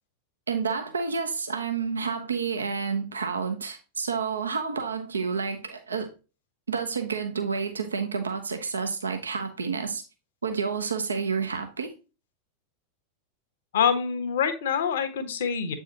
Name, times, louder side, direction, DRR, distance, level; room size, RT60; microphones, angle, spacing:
voice 1, 0.5-6.1 6.7-10.0 10.4-11.9, right 5 dB, 75° right, 0.8 m, -29 dB
voice 2, 13.7-15.7, left 7 dB, 60° left, 1.1 m, -25 dB
8.0 x 4.8 x 2.8 m
figure-of-eight pair, 90°, 0 cm